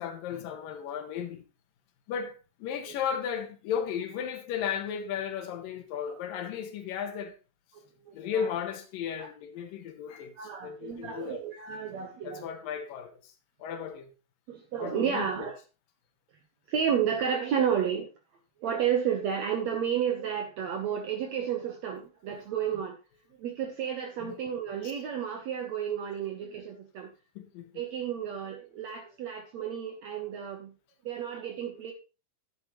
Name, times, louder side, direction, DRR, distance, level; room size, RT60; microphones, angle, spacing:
voice 1, 0.0-1.4 2.1-7.3 8.1-10.3 10.6-11.4 12.2-13.3 13.6-14.1 14.8-15.5 24.2-24.3 27.4-27.7, left 8 dB, 75° left, 2.9 m, -35 dB
voice 2, 7.7-8.5 9.2-9.3 10.4-12.5 14.5-15.6 16.7-18.1 18.6-23.0 23.4-27.1 27.7-30.7 31.0-31.9, right 8 dB, 65° right, 1.8 m, -32 dB
11.0 x 9.0 x 3.0 m
omnidirectional pair, 4.1 m